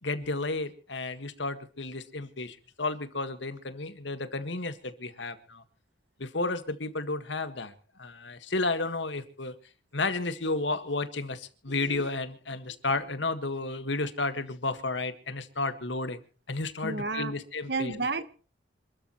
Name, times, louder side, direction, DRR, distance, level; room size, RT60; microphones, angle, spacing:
voice 1, 0.0-5.6 6.2-7.7 8.0-9.5 9.9-16.2 16.5-18.1, left 3 dB, 75° left, 10 dB, 1.8 m, -32 dB
voice 2, 16.8-17.3 17.7-18.3, right 3 dB, 60° right, 12 dB, 1.3 m, -32 dB
27.0 x 13.5 x 3.1 m, 0.38 s
head